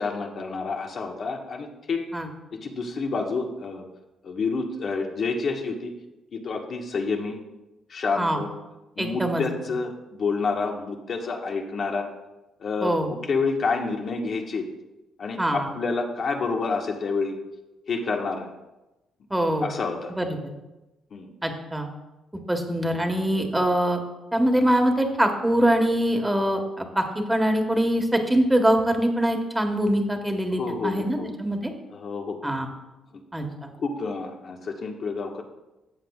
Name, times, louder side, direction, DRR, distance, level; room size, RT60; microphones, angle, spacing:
voice 1, 0.0-2.0 2.6-3.8 4.2-5.9 6.3-7.4 7.9-8.5 9.0-12.1 12.6-14.6 15.2-17.4 17.9-18.5 19.6-20.1 21.1-21.3 30.6-31.3 31.9-32.4 33.1-33.2 33.8-35.4, left 4 dB, 55° left, 2 dB, 1.4 m, -28 dB
voice 2, 9.0-9.4 12.8-13.1 15.4-15.7 19.3-19.7 20.1-20.4 21.4-21.9 22.5-24.0 24.3-31.7 32.4-32.7 33.3-33.7, right 1 dB, 10° right, 4 dB, 1.5 m, -23 dB
14.5 x 7.8 x 2.4 m, 1.0 s
cardioid pair, 90°, 0 cm